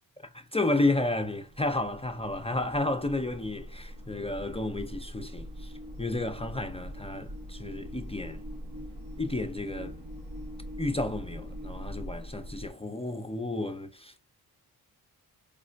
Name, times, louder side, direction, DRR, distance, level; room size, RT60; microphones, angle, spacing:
voice 1, 0.2-5.7 6.0-8.4 9.2-10.0 10.8-14.2, left 2 dB, 15° left, 0.4 m, -32 dB
sound 1, 1.1-12.7, equal, 60° right, 1.0 m, -42 dB
5.0 x 2.4 x 2.2 m
cardioid pair, 100°, 40 cm